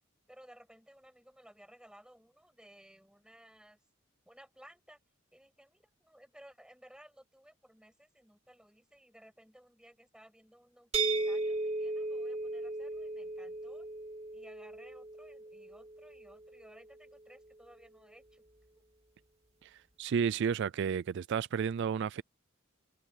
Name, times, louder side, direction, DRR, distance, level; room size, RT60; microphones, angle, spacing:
voice 1, 0.3-3.8 4.2-5.0 5.3-13.9 14.3-18.4 18.8-18.9, equal, 5° right, 6.7 m, -58 dB
sound 1, 10.9-16.7, right 3 dB, 30° right, 2.6 m, -36 dB
voice 2, 19.6-22.2, right 7 dB, 55° right, 0.3 m, -32 dB
head